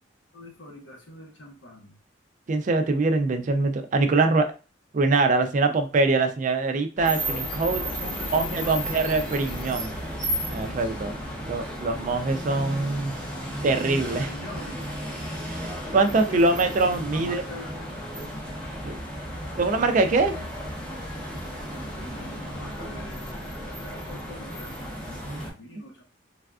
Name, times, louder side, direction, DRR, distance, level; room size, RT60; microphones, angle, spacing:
voice 1, 0.3-2.0 5.6-5.8 7.7-9.0 10.6-11.0 13.9-15.0 15.6-18.0 19.2-20.5 21.7-26.0, left 1 dB, 70° left, 2 dB, 0.8 m, -44 dB
voice 2, 2.5-4.5 4.9-7.8 8.3-10.0 10.5-11.1 11.5-13.1 13.6-14.3 15.5-15.7 15.9-17.4 18.8-19.0 19.6-20.3 25.2-25.4, right 3 dB, 40° right, 7 dB, 0.4 m, -23 dB
sound 1, 7.0-25.5, equal, 5° left, 0.7 m, -34 dB
3.3 x 2.4 x 2.3 m, 0.33 s
head